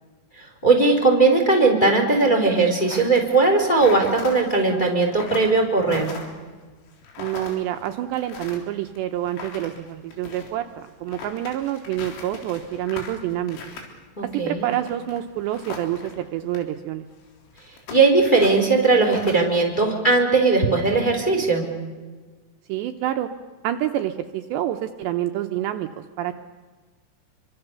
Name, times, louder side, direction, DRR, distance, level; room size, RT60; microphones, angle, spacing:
voice 1, 0.4-6.0 14.2-14.7 17.9-21.6, right 3 dB, 10° left, 3 dB, 3.2 m, -19 dB
sound 1, 2.8-16.2 16.5-16.6 17.2-19.6, left 4 dB, 90° left, 6.2 m, -39 dB
voice 2, 7.2-13.6 14.5-17.1 22.7-23.3 23.6-26.3, right 12 dB, 75° right, 6 dB, 2.8 m, -27 dB
27.5 x 24.5 x 6.9 m, 1.4 s
omnidirectional pair, 5.6 m